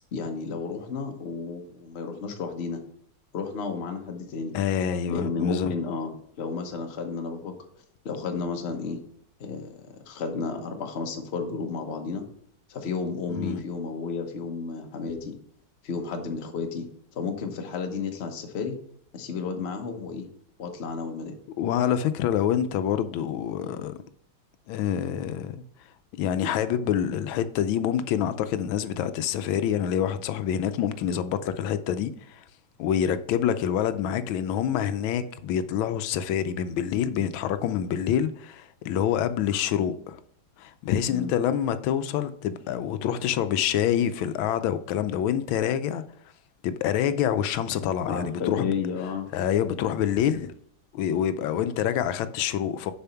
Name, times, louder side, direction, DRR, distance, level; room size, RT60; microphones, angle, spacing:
voice 1, 0.1-2.8 3.3-4.5 5.1-7.5 8.0-9.0 9.4-12.2 12.7-15.3 15.8-16.9 17.1-18.8 19.1-20.3 20.6-21.4 41.1-41.3 48.1-49.3, left 5 dB, 40° left, 1.0 m, -32 dB
voice 2, 4.5-5.7 13.4-13.6 21.6-23.9 24.7-25.6 26.2-32.4 32.8-40.2 40.6-46.0 46.6-48.7 49.3-50.5 50.9-52.9, left 9 dB, 90° left, 1.4 m, -26 dB
6.9 x 5.1 x 5.6 m
omnidirectional pair, 2.1 m